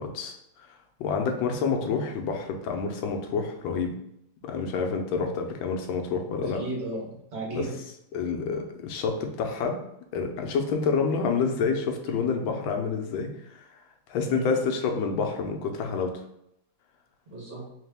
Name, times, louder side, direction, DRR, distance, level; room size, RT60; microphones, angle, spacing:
voice 1, 0.0-3.9 4.4-6.6 7.5-7.7 8.1-9.8 10.1-13.7 14.1-16.2, left 5 dB, 85° left, 3 dB, 1.4 m, -28 dB
voice 2, 6.4-7.8 12.1-12.2 14.2-14.7 17.3-17.6, right 2 dB, 40° right, -5 dB, 1.4 m, -35 dB
4.0 x 2.9 x 3.4 m, 0.79 s
omnidirectional pair, 2.1 m